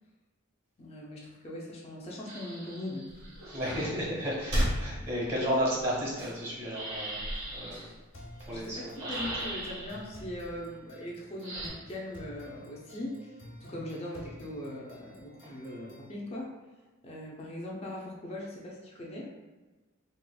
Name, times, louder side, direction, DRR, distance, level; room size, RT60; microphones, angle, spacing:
voice 1, 0.8-3.5 3.8-4.0 7.8-7.9 8.5-16.5 17.0-19.3, left 1 dB, 30° left, -3 dB, 0.5 m, -40 dB
sound 1, 2.3-4.0 6.6-7.9 9.0-10.0 11.4-11.7, right 2 dB, 75° right, 1.4 m, -40 dB
sound 2, 3.1-10.5, equal, 55° right, 1.2 m, -38 dB
voice 2, 3.5-7.2 7.5-7.8 8.5-8.9, equal, 30° right, -5 dB, 1.0 m, -32 dB
sound 3, 8.1-16.1, left 1 dB, 65° left, 1.0 m, -51 dB
4.1 x 2.4 x 2.2 m, 1.2 s
head